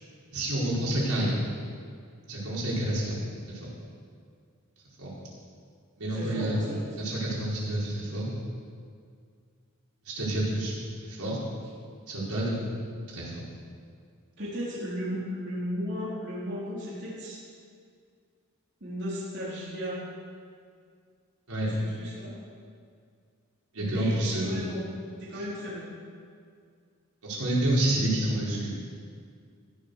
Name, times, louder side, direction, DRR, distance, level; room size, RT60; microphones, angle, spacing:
voice 1, 0.3-1.3 2.3-3.2 3.6-3.7 5.0-5.1 6.0-6.6 7.0-8.3 10.0-10.7 11.0-11.4 12.1-12.6 13.1-13.4 21.5-21.8 23.7-24.7 25.3-25.4 27.2-28.7, right 1 dB, 80° right, -7 dB, 5.1 m, -28 dB
voice 2, 6.1-6.9 14.4-17.4 18.8-20.0 21.6-22.3 23.8-24.8 25.2-25.8, equal, 50° right, -8 dB, 3.8 m, -35 dB
15.0 x 11.0 x 6.7 m, 2.2 s
head